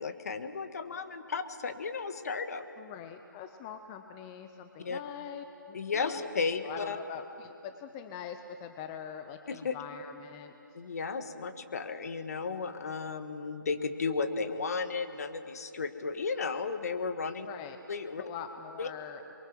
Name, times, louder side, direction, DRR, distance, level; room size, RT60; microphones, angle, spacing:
voice 1, 0.0-2.6 4.8-5.0 5.7-7.0 9.5-9.8 10.7-17.5 17.9-18.2 18.8-18.9, left 4 dB, 50° left, 9 dB, 1.7 m, -34 dB
voice 2, 2.8-6.3 6.6-10.5 17.5-17.8 18.2-19.3, left 8 dB, 15° left, 8 dB, 0.6 m, -43 dB
28.5 x 23.5 x 6.2 m, 2.7 s
figure-of-eight pair, 155°, 11 cm